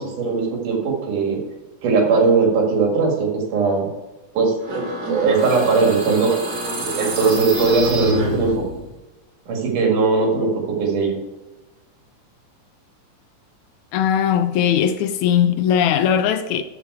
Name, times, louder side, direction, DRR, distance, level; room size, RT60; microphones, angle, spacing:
voice 1, 0.0-1.4 1.8-3.9 4.3-4.5 5.1-6.6 7.0-8.7 9.5-10.5 10.8-11.2, right 4 dB, 80° right, 3.6 m, -19 dB
sound 1, 4.6-8.9, right 1 dB, 40° right, 2.6 m, -27 dB
voice 2, 13.9-16.6, left 9 dB, 80° left, 1.8 m, -19 dB
13.0 x 5.7 x 4.7 m
omnidirectional pair, 3.6 m